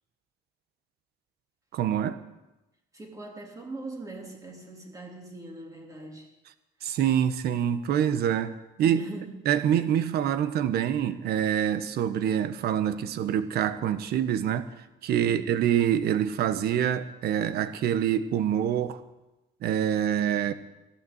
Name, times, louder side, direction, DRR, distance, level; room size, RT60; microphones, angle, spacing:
voice 1, 1.7-2.2 6.8-9.0 9.4-14.7 15.0-19.0 19.6-20.5, right 9 dB, 70° right, 12 dB, 1.3 m, -26 dB
voice 2, 2.9-6.3 8.8-9.4, right 2 dB, 20° right, 0 dB, 3.4 m, -41 dB
15.0 x 12.0 x 8.1 m, 1.0 s
cardioid pair, 110°, 17 cm